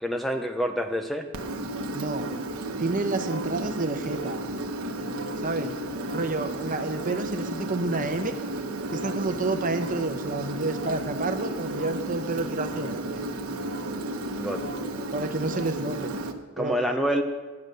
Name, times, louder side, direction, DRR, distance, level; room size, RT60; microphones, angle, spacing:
voice 1, 0.0-1.3 14.3-14.6 16.6-17.2, equal, ahead, 4 dB, 0.5 m, -27 dB
Engine, 1.3-16.3, right 1 dB, 85° right, 1.0 m, -33 dB
voice 2, 1.9-2.3 2.8-4.4 5.4-5.7 6.1-8.3 8.9-13.2 15.1-16.1 16.6-16.8, right 3 dB, 40° right, 7 dB, 0.8 m, -29 dB
11.0 x 8.7 x 6.6 m, 1.3 s
head